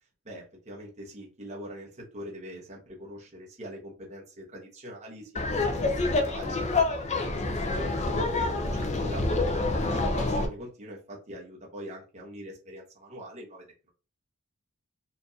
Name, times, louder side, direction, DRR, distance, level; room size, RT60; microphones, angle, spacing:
voice 1, 0.2-5.9 6.1-6.5 6.8-9.2 9.9-13.9, equal, 30° right, -3 dB, 1.1 m, -43 dB
Laughter, 5.4-10.5, left 2 dB, 30° left, 0.6 m, -27 dB
4.4 x 2.6 x 2.8 m, 0.35 s
head